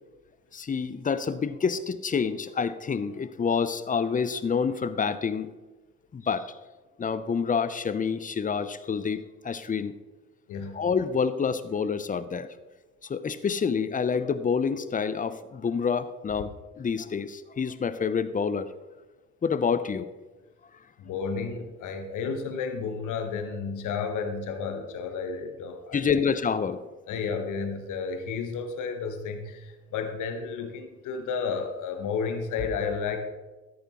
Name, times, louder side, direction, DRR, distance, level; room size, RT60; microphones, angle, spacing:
voice 1, 0.5-5.5 6.1-6.5 7.0-9.9 10.7-12.5 13.0-18.7 19.4-20.1 25.9-26.8, left 6 dB, 25° left, 14 dB, 0.7 m, -28 dB
voice 2, 10.5-10.8 21.0-26.2 27.1-33.2, left 5 dB, 55° left, 6 dB, 1.4 m, -32 dB
13.5 x 9.5 x 3.1 m, 1.2 s
figure-of-eight pair, 50°, 36 cm